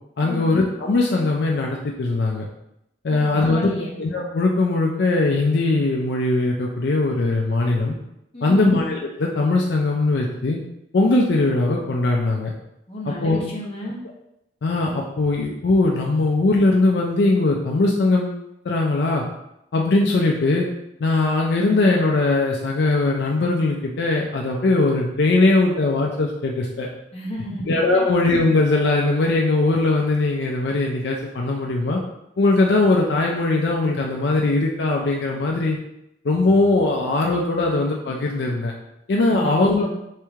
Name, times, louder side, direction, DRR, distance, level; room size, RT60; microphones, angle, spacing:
voice 1, 0.2-2.5 3.0-3.7 4.0-8.0 8.4-10.6 10.9-12.5 13.1-13.4 14.6-19.2 19.7-20.7 21.0-26.9 27.7-32.0 32.4-35.8 36.2-38.7 39.1-39.9, left 2 dB, 70° left, -1 dB, 0.4 m, -20 dB
voice 2, 3.1-4.0 8.3-8.7 12.9-14.0 27.1-28.1 39.3-39.9, equal, 35° left, -4 dB, 0.9 m, -32 dB
3.3 x 3.1 x 3.5 m, 0.83 s
head